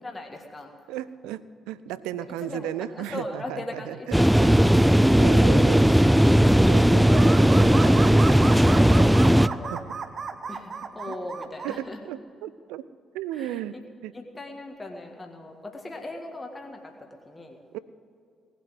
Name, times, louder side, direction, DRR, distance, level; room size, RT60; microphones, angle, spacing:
voice 1, 0.0-0.7 2.2-5.0 5.3-6.5 7.6-9.8 10.5-12.0 13.3-13.8 14.1-17.6, left 2 dB, 25° left, 2 dB, 1.8 m, -38 dB
voice 2, 0.9-4.5 5.2-5.8 6.7-8.0 9.7-9.8 11.1-11.2 11.6-12.8 13.1-13.7 14.0-14.1 17.7-17.8, right 12 dB, 65° right, 17 dB, 0.4 m, -35 dB
sound 1, 4.1-9.5, equal, 5° right, 0.4 m, -17 dB
sound 2, 7.0-11.8, right 5 dB, 45° right, 0.9 m, -33 dB
19.0 x 8.4 x 7.9 m, 2.4 s
figure-of-eight pair, 40°, 0 cm